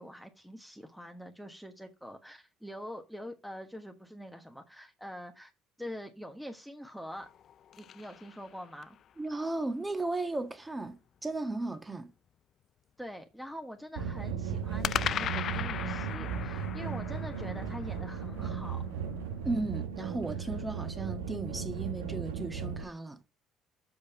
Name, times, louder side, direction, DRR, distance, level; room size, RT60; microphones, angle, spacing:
voice 1, 0.0-5.5 5.8-7.3 7.8-9.0 13.0-18.8, equal, ahead, 1.4 m, -44 dB
sound 1, 7.1-9.0 14.8-19.1, left 9 dB, 55° left, 0.4 m, -38 dB
voice 2, 9.2-12.1 19.4-23.2, right 2 dB, 20° right, 1.6 m, -35 dB
sound 2, 14.0-22.8, right 6 dB, 90° right, 1.2 m, -36 dB
7.1 x 5.1 x 5.9 m
hypercardioid pair, 65°, 0 cm